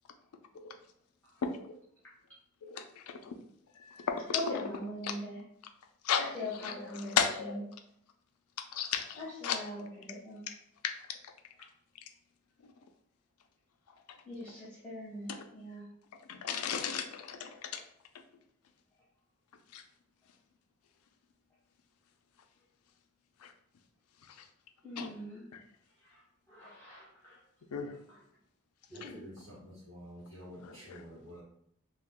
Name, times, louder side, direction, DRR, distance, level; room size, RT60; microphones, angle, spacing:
voice 1, 2.6-3.4 3.8-4.3 6.0-6.2 6.6-6.7 7.2-7.6 8.7-9.2 9.4-9.6 10.8-10.9 16.3-17.8 19.7-19.8 25.0-25.1 27.7-27.9, left 7 dB, 90° left, 6 dB, 0.4 m, -33 dB
voice 2, 4.3-5.4 6.2-7.6 9.1-10.4 14.2-15.9 24.8-25.5 26.0-26.2 26.5-27.4 28.1-28.2 28.9-29.3, left 1 dB, 10° left, -9 dB, 0.8 m, -41 dB
voice 3, 28.9-31.4, equal, 70° right, -9 dB, 1.5 m, -50 dB
2.9 x 2.3 x 3.5 m, 0.70 s
head